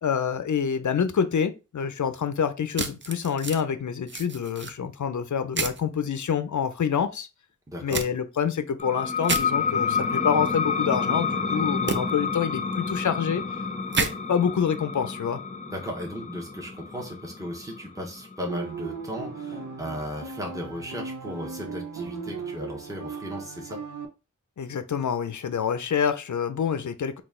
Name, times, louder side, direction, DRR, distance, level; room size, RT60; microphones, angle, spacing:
voice 1, 0.0-7.3 7.8-13.4 14.0-15.4 24.6-27.2, left 7 dB, 75° left, 0.5 m, -27 dB
sound 1, 2.7-3.6 4.1-4.7 5.5-5.8 7.9-8.1 9.2-9.4 11.9-12.0 13.9-14.1, right 4 dB, 40° right, 0.6 m, -28 dB
voice 2, 7.7-8.1 15.7-23.8, equal, 10° right, 1.1 m, -36 dB
sound 2, 8.8-20.1, left 5 dB, 25° left, 0.6 m, -29 dB
sound 3, 18.5-24.1, right 5 dB, 75° right, 0.7 m, -37 dB
4.0 x 2.4 x 3.7 m
wide cardioid pair, 55°, 30 cm